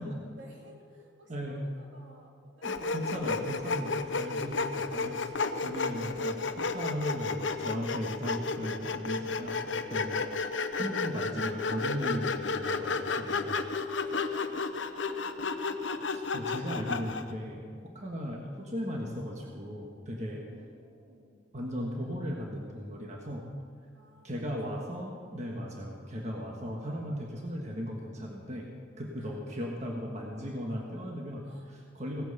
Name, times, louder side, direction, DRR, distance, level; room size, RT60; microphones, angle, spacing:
voice 1, 0.4-3.0 4.0-4.2 4.7-4.9 5.4-5.9 8.0-8.3 10.1-10.4 13.8-15.7 20.3-21.5 23.9-25.5 29.1-29.5 31.4-31.7, equal, 85° right, -3 dB, 3.5 m, -54 dB
voice 2, 1.3-1.6 2.6-5.2 5.6-10.2 10.8-13.6 16.1-20.4 21.5-23.4 24.2-28.7 29.0-32.2, equal, 40° right, -1 dB, 1.5 m, -37 dB
Sawing, 2.6-17.3, left 4 dB, 90° left, 0.7 m, -32 dB
17.0 x 9.1 x 6.7 m, 2.1 s
head